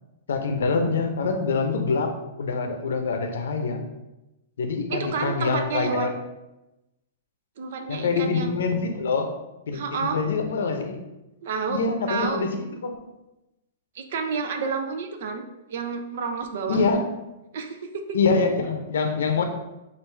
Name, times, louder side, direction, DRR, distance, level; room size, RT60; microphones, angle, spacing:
voice 1, 0.3-3.8 4.6-6.2 7.9-9.3 9.7-11.0 11.7-13.0 16.7-17.1 18.1-19.5, left 4 dB, 85° left, 6 dB, 0.7 m, -25 dB
voice 2, 4.9-6.1 7.6-8.5 9.7-10.2 11.4-12.4 13.9-15.4 15.7-16.8 17.5-18.2, right 5 dB, 60° right, 6 dB, 0.6 m, -30 dB
6.0 x 2.6 x 3.3 m, 0.96 s
supercardioid pair, 170°, 0 cm